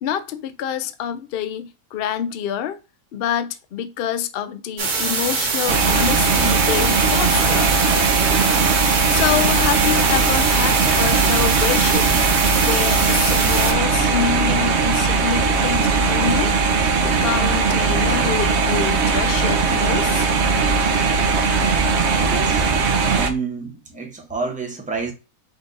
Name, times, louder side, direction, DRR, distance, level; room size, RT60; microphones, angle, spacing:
voice 1, 0.0-2.8 3.1-7.8 8.6-12.2 12.5-16.5 17.0-20.3, left 9 dB, 80° left, 0.5 m, -26 dB
sound 1, 4.8-13.7, right 4 dB, 85° right, 1.6 m, -23 dB
sound 2, 5.7-23.3, right 4 dB, 60° right, 0.7 m, -19 dB
voice 2, 22.2-22.6 23.1-25.1, right 4 dB, 10° right, 0.6 m, -28 dB
5.1 x 2.5 x 3.8 m
omnidirectional pair, 1.6 m